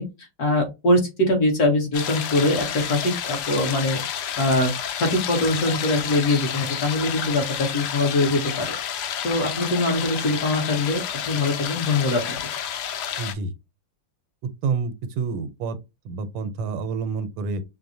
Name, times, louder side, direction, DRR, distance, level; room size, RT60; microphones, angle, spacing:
voice 1, 0.0-8.7 9.2-12.3, left 2 dB, 50° left, 1.4 m, -23 dB
sound 1, 1.9-13.3, left 9 dB, 80° left, 0.9 m, -30 dB
voice 2, 13.2-13.5 14.4-15.8 16.0-17.6, right 5 dB, 80° right, 1.5 m, -28 dB
6.2 x 2.1 x 2.6 m
omnidirectional pair, 2.4 m